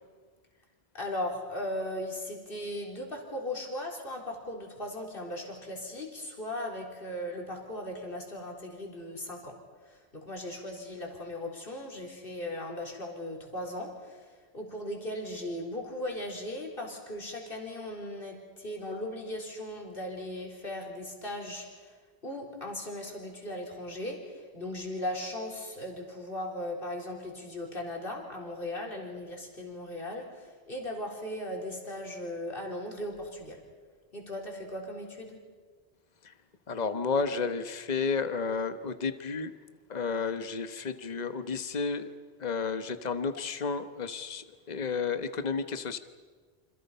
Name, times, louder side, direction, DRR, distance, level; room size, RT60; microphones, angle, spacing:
voice 1, 0.9-9.6 9.8-22.0 22.2-33.6 34.1-35.4, left 1 dB, 55° left, 0 dB, 4.1 m, -38 dB
voice 2, 36.7-39.5 39.9-42.1 42.4-46.0, left 5 dB, 40° left, 10 dB, 1.2 m, -32 dB
29.5 x 26.5 x 5.6 m, 1.5 s
omnidirectional pair, 1.1 m